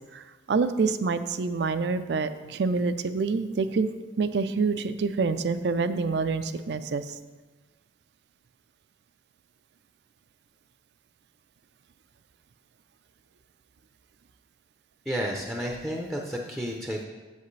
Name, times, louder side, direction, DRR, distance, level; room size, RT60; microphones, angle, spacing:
voice 1, 0.5-3.9 4.2-7.0, right 4 dB, 60° right, 11 dB, 0.4 m, -26 dB
voice 2, 15.1-17.0, equal, ahead, -1 dB, 0.6 m, -31 dB
8.2 x 7.5 x 3.2 m, 1.3 s
head